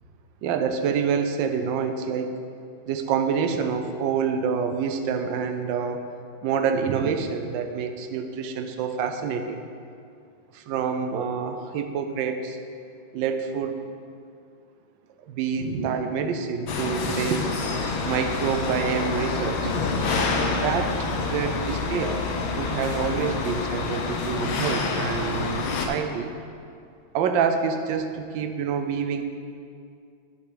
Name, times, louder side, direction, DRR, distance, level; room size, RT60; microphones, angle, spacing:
voice 1, 0.4-2.3 2.9-6.0 6.4-9.6 10.5-12.6 13.1-13.8 15.2-17.5 18.0-20.0 20.6-20.9 21.2-22.2 22.5-26.3 27.1-29.2, right 6 dB, 70° right, 7 dB, 1.3 m, -27 dB
sound 1, 16.7-25.9, left 3 dB, 75° left, 1.6 m, -27 dB
11.5 x 5.2 x 5.0 m, 2.3 s
omnidirectional pair, 2.2 m